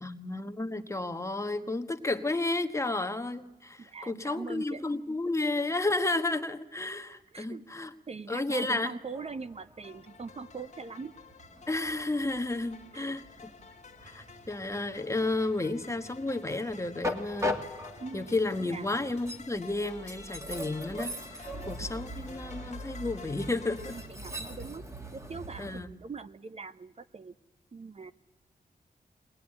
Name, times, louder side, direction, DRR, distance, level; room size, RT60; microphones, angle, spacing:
voice 1, 0.0-7.9 8.3-8.9 11.7-13.5 14.0-17.6 18.1-24.0 25.6-25.9, left 2 dB, 20° left, 8 dB, 1.3 m, -32 dB
voice 2, 3.8-4.9 7.3-7.7 8.1-11.2 12.9-13.2 18.0-18.3 18.7-18.9 21.5-22.1 23.9-24.9 25.1-27.3 27.7-28.1, right 4 dB, 40° right, 12 dB, 0.8 m, -42 dB
Train, 9.0-25.8, left 1 dB, 20° right, 2.3 m, -41 dB
sound 1, 9.8-24.1, left 5 dB, 45° left, 1.9 m, -51 dB
sound 2, 14.0-19.5, right 2 dB, 70° right, 4.8 m, -56 dB
22.5 x 19.5 x 9.8 m, 1.0 s
wide cardioid pair, 125°, 16 cm